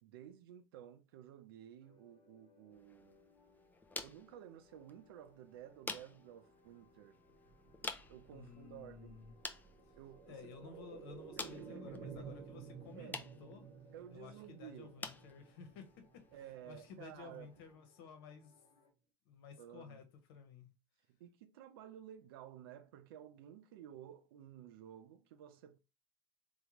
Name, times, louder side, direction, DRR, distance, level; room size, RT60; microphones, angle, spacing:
voice 1, 0.0-3.2 4.0-7.2 8.1-9.2 10.0-10.8 11.4-12.3 13.0-13.2 13.9-15.0 16.3-17.5 19.6-20.0 21.1-25.8, right 10 dB, 70° right, 0.5 m, -54 dB
sound 1, 1.8-18.9, left 3 dB, 40° left, 1.2 m, -70 dB
sound 2, 2.7-17.7, left 3 dB, 15° left, 0.4 m, -51 dB
sound 3, 7.2-17.0 17.3-17.4, right 5 dB, 45° right, 0.8 m, -54 dB
voice 2, 8.3-9.4 9.9-10.0 10.3-13.7 14.1-16.2 16.7-18.6 19.3-20.0 20.3-20.7, left 6 dB, 70° left, 0.8 m, -54 dB
3.5 x 2.1 x 2.9 m
hypercardioid pair, 80°, 13 cm